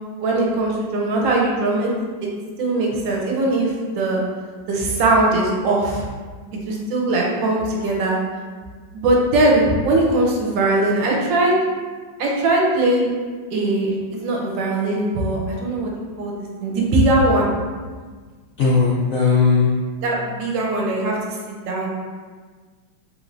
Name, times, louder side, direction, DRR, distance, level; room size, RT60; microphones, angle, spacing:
voice 1, 0.2-1.9 2.2-2.3 2.6-4.2 4.7-6.0 6.6-8.2 8.9-11.6 12.2-13.1 13.5-15.9 16.2-16.3 16.6-17.5 20.0-21.9, right 2 dB, 75° right, -2 dB, 1.3 m, -20 dB
voice 2, 18.6-19.7, left 4 dB, 75° left, -7 dB, 0.7 m, -17 dB
3.4 x 3.1 x 2.5 m, 1.5 s
omnidirectional pair, 2.1 m